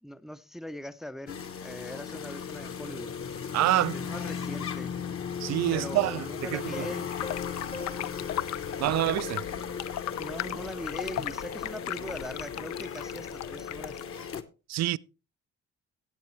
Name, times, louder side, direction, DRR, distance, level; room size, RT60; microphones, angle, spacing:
voice 1, 0.0-3.1 3.7-4.9 5.7-7.1 10.2-14.0, left 1 dB, ahead, 0.5 m, -41 dB
sound 1, 1.3-14.4, left 7 dB, 45° left, 1.1 m, -37 dB
voice 2, 3.5-4.0 5.4-6.9 8.8-9.4 14.7-15.0, right 15 dB, 60° right, 0.4 m, -27 dB
Piano, 6.7-10.0, left 3 dB, 20° left, 0.9 m, -44 dB
sound 2, 7.1-14.0, left 13 dB, 65° left, 0.5 m, -37 dB
16.5 x 7.8 x 3.1 m
cardioid pair, 90°, 30 cm